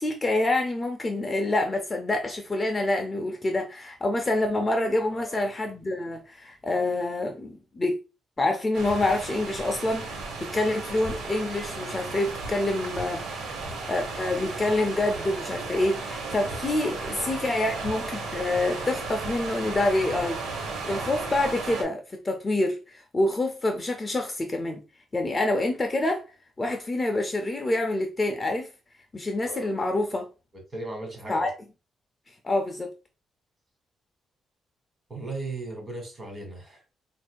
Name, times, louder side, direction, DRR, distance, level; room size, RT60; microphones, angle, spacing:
voice 1, 0.0-8.0 8.4-13.6 13.9-20.4 20.8-24.8 25.1-26.2 26.6-28.7 29.1-30.3 31.3-31.5 32.3-32.9, left 2 dB, 25° left, 0.5 m, -27 dB
sound 1, 8.7-21.8, right 3 dB, 80° right, 1.3 m, -35 dB
voice 2, 16.2-17.3 29.4-29.7 30.7-31.5 35.1-36.9, right 2 dB, 25° right, 1.8 m, -38 dB
5.5 x 2.6 x 2.3 m
cardioid pair, 110°, 0 cm